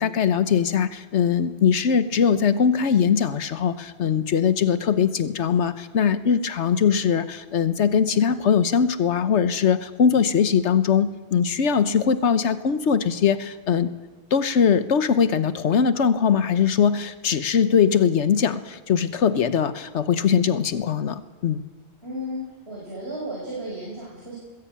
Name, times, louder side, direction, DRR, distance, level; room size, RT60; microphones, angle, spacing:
voice 1, 0.0-13.9 14.3-21.6, left 7 dB, 90° left, 12 dB, 1.3 m, -21 dB
voice 2, 22.0-24.4, equal, 65° right, -5 dB, 6.1 m, -34 dB
21.0 x 15.5 x 8.7 m, 1.3 s
omnidirectional pair, 1.2 m